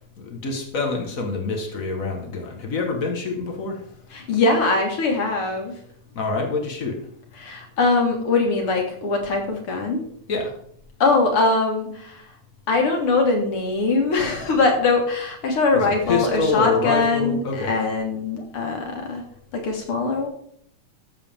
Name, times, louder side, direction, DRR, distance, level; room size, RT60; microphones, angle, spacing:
voice 1, 0.2-3.9 6.1-7.1 10.3-10.6 15.7-17.7, left 3 dB, 70° left, 3 dB, 0.8 m, -26 dB
voice 2, 4.1-5.7 7.4-10.0 11.0-12.2 12.7-19.2 19.5-20.3, left 3 dB, 50° left, 2 dB, 2.2 m, -22 dB
12.5 x 7.4 x 3.5 m, 0.64 s
omnidirectional pair, 3.5 m